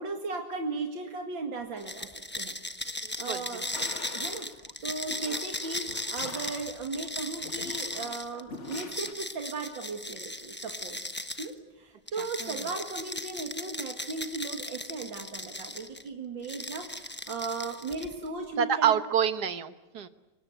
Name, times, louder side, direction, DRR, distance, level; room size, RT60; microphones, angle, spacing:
voice 1, 0.0-2.1 2.3-2.5 3.2-3.7 4.1-11.0 11.4-18.9, right 3 dB, 90° right, 3 dB, 2.9 m, -37 dB
sound 1, 1.8-11.5 12.1-16.0 16.4-18.3, left 1 dB, 10° left, 0.7 m, -37 dB
voice 2, 3.0-3.9 12.2-12.5 18.6-20.1, right 8 dB, 60° right, 11 dB, 1.7 m, -28 dB
sound 2, 3.7-9.1, left 4 dB, 40° left, 2.0 m, -45 dB
29.0 x 24.5 x 8.1 m, 1.0 s
omnidirectional pair, 2.0 m